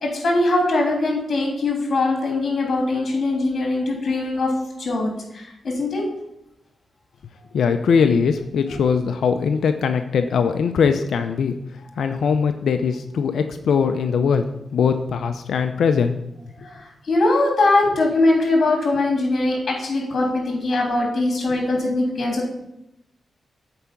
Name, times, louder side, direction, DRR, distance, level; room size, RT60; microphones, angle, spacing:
voice 1, 0.0-4.5 4.8-6.0 16.6-22.5, left 2 dB, 55° left, -1 dB, 3.1 m, -21 dB
voice 2, 7.5-11.5 12.0-16.2, left 6 dB, 80° left, 8 dB, 0.5 m, -21 dB
8.1 x 4.8 x 7.0 m, 0.83 s
cardioid pair, 60°, 0 cm